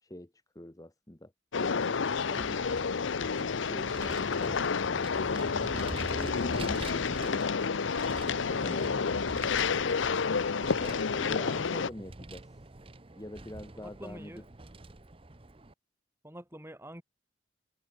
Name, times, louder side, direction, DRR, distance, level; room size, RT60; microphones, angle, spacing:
voice 1, 0.0-1.3 1.6-2.7 3.6-4.5 5.6-7.6 8.5-8.9 10.8-12.5 13.2-14.3, left 1 dB, 20° left, 1.2 m, -44 dB
sound 1, 1.5-11.9, left 5 dB, 85° left, 0.7 m, -30 dB
voice 2, 2.4-2.8 4.4-4.8 8.6-9.9 13.7-14.4 16.2-17.0, equal, 15° right, 6.0 m, -47 dB
Vehicle, 2.5-15.7, right 2 dB, 30° right, 0.9 m, -45 dB
head